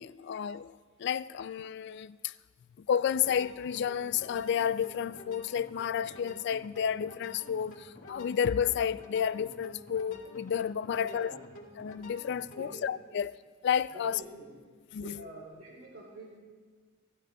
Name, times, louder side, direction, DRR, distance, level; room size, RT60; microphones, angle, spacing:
voice 1, 0.0-2.3 2.9-11.4 11.8-13.4 13.6-14.2 14.9-15.2, left 8 dB, 60° left, 0.3 m, -31 dB
sound 1, 3.1-12.7, left 2 dB, 90° left, 2.1 m, -50 dB
voice 2, 11.0-11.4 12.5-12.8 13.1-13.2 13.9-14.6 15.0-16.4, right 2 dB, 70° right, 2.2 m, -47 dB
18.0 x 13.5 x 2.3 m
head